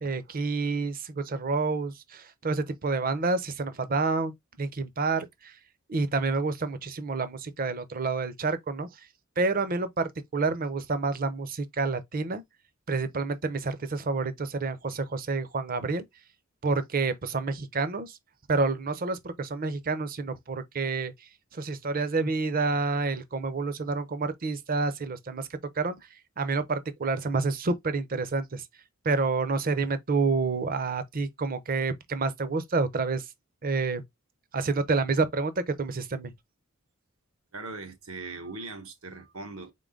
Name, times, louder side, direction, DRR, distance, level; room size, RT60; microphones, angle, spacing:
voice 1, 0.0-5.5 5.9-8.9 9.4-12.4 12.9-16.0 16.6-18.2 18.5-21.1 21.5-25.4 25.8-26.0 26.4-28.6 29.0-33.2 33.6-34.0 34.5-36.3, right 3 dB, 40° right, 0.6 m, -28 dB
voice 2, 37.5-39.7, right 3 dB, 85° right, 1.4 m, -40 dB
3.8 x 3.8 x 3.7 m
head